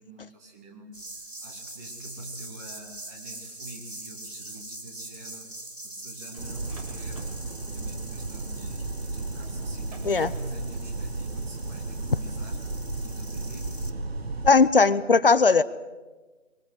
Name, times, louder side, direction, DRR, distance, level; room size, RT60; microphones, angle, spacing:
voice 1, 0.0-5.5 5.8-12.8 13.0-13.9, right 1 dB, 15° right, 1 dB, 2.1 m, -45 dB
sound 1, 0.9-13.9, right 2 dB, 85° right, 2.9 m, -43 dB
sound 2, 6.3-9.1 9.7-10.6, right 3 dB, 30° right, 3.8 m, -50 dB
sound 3, 6.4-14.5, right 2 dB, 55° right, 1.4 m, -34 dB
voice 2, 14.4-15.6, left 4 dB, 45° left, 16 dB, 0.9 m, -18 dB
22.5 x 22.0 x 7.9 m, 1.2 s
figure-of-eight pair, 160°, 37 cm